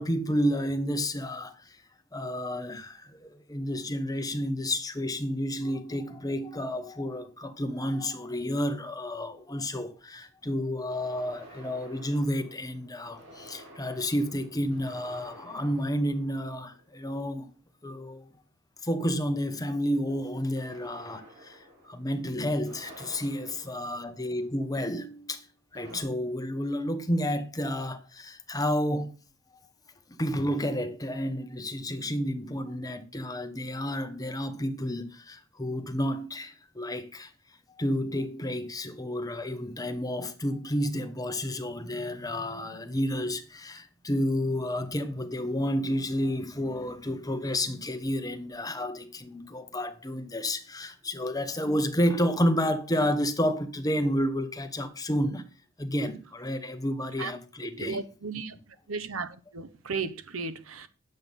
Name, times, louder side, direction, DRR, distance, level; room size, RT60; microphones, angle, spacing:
voice 1, 0.0-1.8 2.1-17.5 17.8-18.3 18.8-25.5 25.7-29.2 30.1-37.3 37.8-55.5 55.8-58.0, equal, 20° left, 1.1 m, -30 dB
sound 1, 10.9-17.4 20.6-24.8 25.7-26.0, equal, 60° right, 5.1 m, -52 dB
voice 2, 57.8-58.5 58.9-60.9, right 4 dB, 80° right, 1.0 m, -35 dB
8.9 x 7.8 x 5.4 m
head